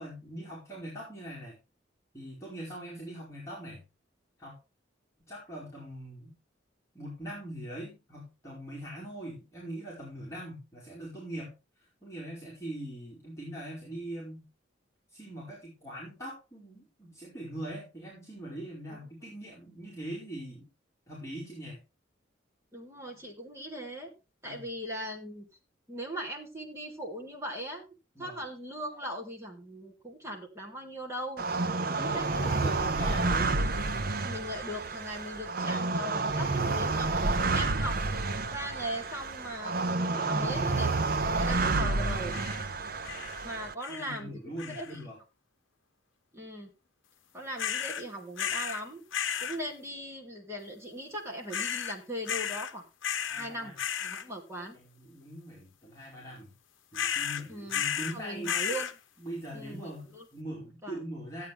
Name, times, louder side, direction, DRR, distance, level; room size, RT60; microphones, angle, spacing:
voice 1, 0.0-1.5 2.1-3.8 4.4-4.6 5.3-6.4 6.9-11.5 12.0-14.5 15.1-20.7 21.1-21.8 24.4-24.6 28.1-28.4 31.9-33.6 40.1-40.8 42.7-43.0 43.9-45.2 53.3-53.8 54.7-56.5 56.9-58.6 59.2-61.5, right 1 dB, 15° left, -6 dB, 4.6 m, -42 dB
voice 2, 22.7-24.1 24.4-25.5 25.9-27.9 28.2-31.5 32.1-32.8 33.5-33.8 34.2-39.8 40.1-40.9 41.4-42.4 43.4-45.0 46.3-46.7 47.3-49.0 49.4-52.8 53.3-53.8 54.0-54.8 57.5-57.8 58.1-58.9 59.5-60.3 60.8-61.0, equal, 15° right, -1 dB, 2.6 m, -39 dB
sound 1, 31.4-43.7, right 3 dB, 50° right, 0.7 m, -30 dB
sound 2, 42.3-42.7 43.0-43.4 43.8-44.2 44.6-45.0 47.6-48.0 48.4-48.8 49.1-49.6 51.5-52.0 52.3-52.7 53.0-53.5 53.8-54.2 56.9-58.2 58.4-58.9, left 8 dB, 85° left, 0.8 m, -33 dB
14.5 x 8.6 x 3.5 m, 0.26 s
head